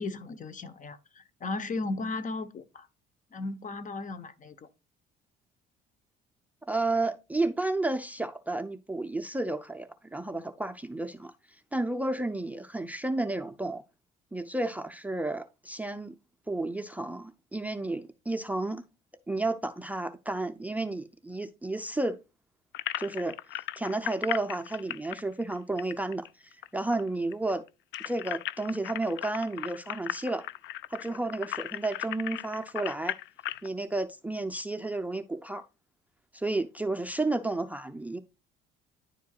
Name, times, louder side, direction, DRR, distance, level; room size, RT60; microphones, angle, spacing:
voice 1, 0.0-2.9 3.3-4.7, left 3 dB, 40° left, 1.0 m, -36 dB
voice 2, 6.7-11.3 11.7-13.8 14.3-16.1 16.5-18.8 19.3-22.2 23.0-27.6 28.0-30.4 30.9-33.1 33.6-35.6 36.3-38.2, right 2 dB, 5° right, 0.5 m, -32 dB
sound 1, 22.7-26.7 26.9-27.0 27.3-33.7, left 14 dB, 65° left, 0.4 m, -37 dB
10.0 x 4.5 x 2.4 m
supercardioid pair, 85°, 20 cm